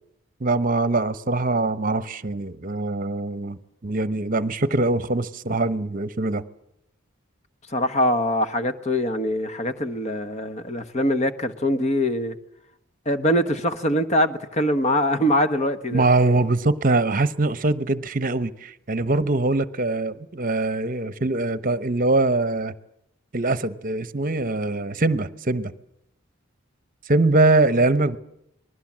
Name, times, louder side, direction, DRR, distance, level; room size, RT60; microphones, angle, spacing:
voice 1, 0.4-6.4 15.9-22.7 23.3-25.7 27.1-28.2, right 2 dB, 40° right, 1.0 m, -22 dB
voice 2, 7.7-12.4 13.1-16.0, left 1 dB, 35° left, 1.3 m, -23 dB
27.0 x 20.5 x 7.5 m
head